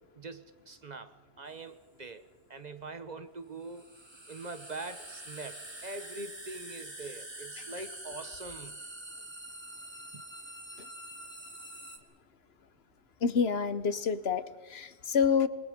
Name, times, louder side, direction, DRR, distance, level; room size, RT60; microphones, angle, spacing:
voice 1, 0.2-2.2 2.5-3.9 4.3-8.8 10.1-10.2, right 3 dB, 40° right, 10 dB, 1.2 m, -43 dB
sound 1, 1.5-1.6 3.6-12.0, right 1 dB, 25° right, 2.1 m, -45 dB
voice 2, 13.2-14.4 14.7-15.5, left 6 dB, 70° left, 14 dB, 1.2 m, -27 dB
27.5 x 21.5 x 5.2 m, 1.3 s
omnidirectional pair, 1.1 m